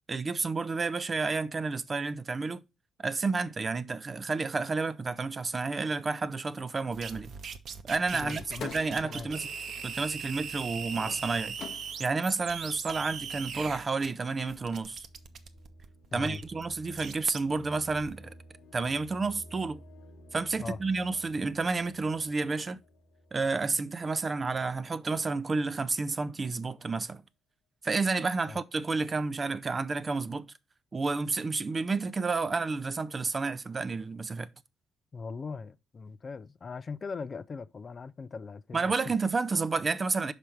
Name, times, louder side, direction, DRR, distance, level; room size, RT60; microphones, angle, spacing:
voice 1, 0.1-2.6 3.0-7.3 7.9-9.5 9.8-11.5 12.0-15.1 16.1-18.3 18.7-19.8 20.3-22.8 23.3-27.2 27.8-30.5 30.9-34.5 38.7-40.3, right 4 dB, 30° right, 0.6 m, -30 dB
sound 1, 6.9-14.1 14.5-17.4 17.9-18.1, right 6 dB, 60° right, 0.8 m, -40 dB
voice 2, 8.1-8.7 9.0-9.3 16.1-16.4 20.6-20.8 28.5-28.6 35.1-39.1, left 4 dB, 40° left, 0.4 m, -40 dB
sound 2, 8.2-12.3, left 7 dB, 65° left, 0.7 m, -46 dB
sound 3, 14.9-24.7, equal, 85° left, 1.0 m, -53 dB
5.7 x 5.0 x 4.6 m
cardioid pair, 90°, 0 cm